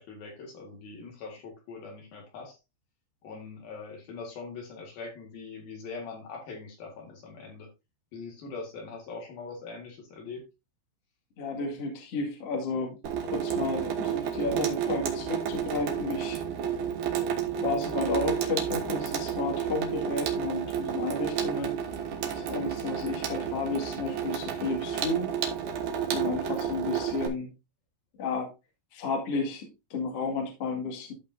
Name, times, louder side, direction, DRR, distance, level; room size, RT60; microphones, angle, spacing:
voice 1, 0.0-2.6 3.2-7.7 8.1-10.4, left 4 dB, 60° left, 1 dB, 3.3 m, -42 dB
voice 2, 11.4-13.0 13.2-16.4 17.6-21.7 22.3-25.3 26.1-27.5 28.2-28.5 28.9-31.1, left 3 dB, 45° left, 0 dB, 2.3 m, -32 dB
Water tap faucet / Sink (filling or washing), 13.0-27.3, right 8 dB, 65° right, 2.1 m, -31 dB
14.0 x 5.1 x 2.7 m, 0.25 s
omnidirectional pair, 5.3 m